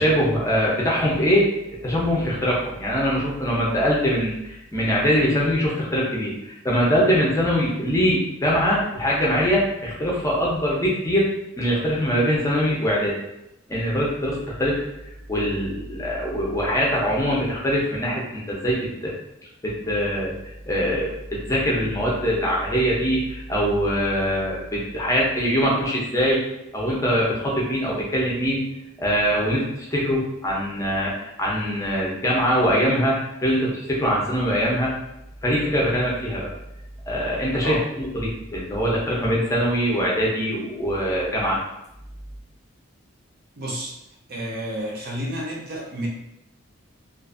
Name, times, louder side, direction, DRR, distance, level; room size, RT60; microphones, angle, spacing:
voice 1, 0.0-1.5 1.8-11.3 11.6-13.2 13.7-14.8 15.3-19.1 19.6-20.4 20.7-26.4 26.7-28.7 29.0-34.9 35.4-36.5 37.1-41.6, equal, 15° left, -5 dB, 0.6 m, -23 dB
voice 2, 43.6-44.0 44.3-46.1, equal, 50° right, -3 dB, 0.6 m, -30 dB
2.5 x 2.4 x 2.4 m, 0.86 s
head